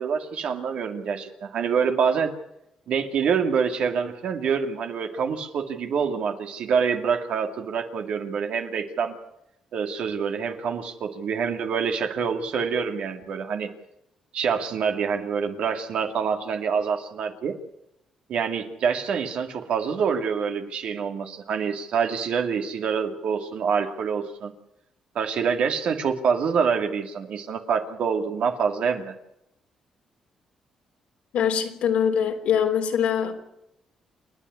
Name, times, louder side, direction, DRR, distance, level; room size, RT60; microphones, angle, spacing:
voice 1, 0.0-2.3 2.9-9.2 9.7-13.7 14.3-17.5 18.3-24.5 25.1-29.1, right 6 dB, 70° right, 5 dB, 2.3 m, -26 dB
voice 2, 31.3-33.4, left 8 dB, 80° left, 3 dB, 3.2 m, -23 dB
28.5 x 10.0 x 9.6 m, 0.84 s
cardioid pair, 85°, 2 cm